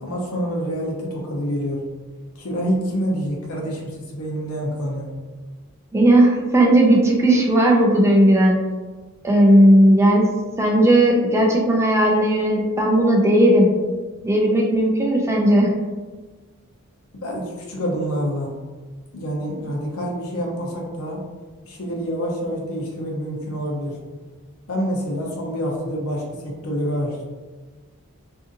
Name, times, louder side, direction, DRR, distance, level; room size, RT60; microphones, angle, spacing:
voice 1, 0.0-1.8 2.4-5.1 17.2-18.5 19.1-21.2 21.7-24.0 24.7-27.2, equal, 75° left, -1 dB, 0.7 m, -27 dB
voice 2, 5.9-8.6 9.2-10.3 10.6-13.7 14.2-15.7, right 1 dB, 10° right, -1 dB, 0.3 m, -16 dB
2.6 x 2.5 x 2.5 m, 1.3 s
head